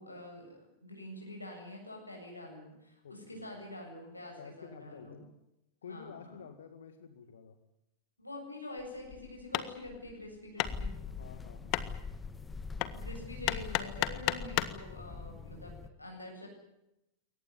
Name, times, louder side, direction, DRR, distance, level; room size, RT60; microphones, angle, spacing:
voice 1, 0.0-5.2 5.9-6.3 8.2-10.9 12.9-16.5, left 1 dB, 85° left, 0 dB, 7.8 m, -46 dB
voice 2, 3.0-3.4 4.4-5.3 5.8-7.6 11.2-12.1, left 7 dB, 65° left, 9 dB, 2.1 m, -50 dB
Hammer, 8.8-14.8, left 16 dB, 40° left, 1.6 m, -36 dB
sound 1, 10.6-15.9, left 4 dB, 10° left, 1.8 m, -43 dB
23.0 x 19.0 x 9.8 m, 0.87 s
figure-of-eight pair, 90°, 0 cm